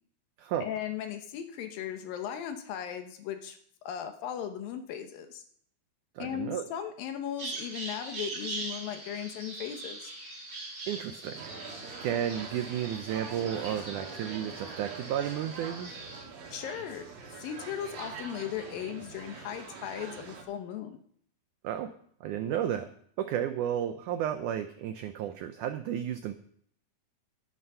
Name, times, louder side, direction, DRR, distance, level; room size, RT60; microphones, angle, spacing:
voice 1, 0.6-5.4 6.2-10.1 16.5-17.1 17.4-21.0, left 9 dB, 75° left, 7 dB, 2.6 m, -37 dB
voice 2, 6.2-6.6 10.9-11.5 12.0-16.0 21.6-21.9 22.2-22.9 23.2-26.3, right 10 dB, 85° right, 8 dB, 1.7 m, -32 dB
Bird vocalization bird call bird song, 7.4-16.2, right 2 dB, 45° right, 6.1 m, -42 dB
sound 1, 11.3-20.4, right 5 dB, 70° right, 3.5 m, -44 dB
11.0 x 11.0 x 5.5 m, 0.63 s
omnidirectional pair, 4.5 m